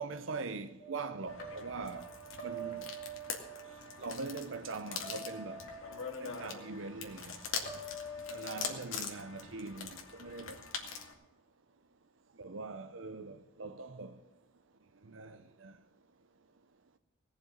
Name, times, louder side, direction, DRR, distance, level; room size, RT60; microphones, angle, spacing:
voice 1, 0.0-2.1 2.4-2.8 4.0-5.6 6.2-7.5 8.3-10.6 12.4-14.2 15.0-15.8, right 3 dB, 75° right, 0.7 m, -42 dB
sound 1, 0.8-4.0 5.0-6.3 7.6-8.6, right 3 dB, 45° left, 3.4 m, -45 dB
sound 2, 1.3-11.1, left 6 dB, 90° left, 2.2 m, -43 dB
18.0 x 6.9 x 8.3 m
head